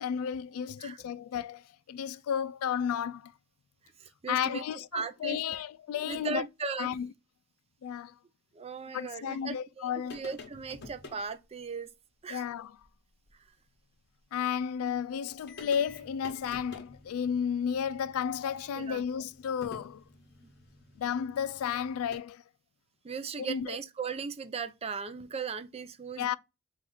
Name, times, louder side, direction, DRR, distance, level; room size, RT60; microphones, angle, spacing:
voice 1, 0.0-3.3 4.3-6.4 6.8-7.1 7.8-8.1 8.9-10.2 12.3-12.7 14.3-20.0 21.0-22.4 23.4-23.8 26.2-26.4, left 8 dB, 90° left, 0.3 m, -33 dB
voice 2, 4.0-4.6 4.9-5.6 5.9-6.9 8.5-11.9 12.2-12.4 18.8-19.0 23.0-26.4, right 5 dB, 30° right, 0.4 m, -38 dB
sound 1, 10.1-11.3 12.8-12.9 13.3-13.4 14.9-15.0 15.3-22.2, left 3 dB, 55° left, 1.0 m, -50 dB
4.3 x 2.4 x 3.9 m
head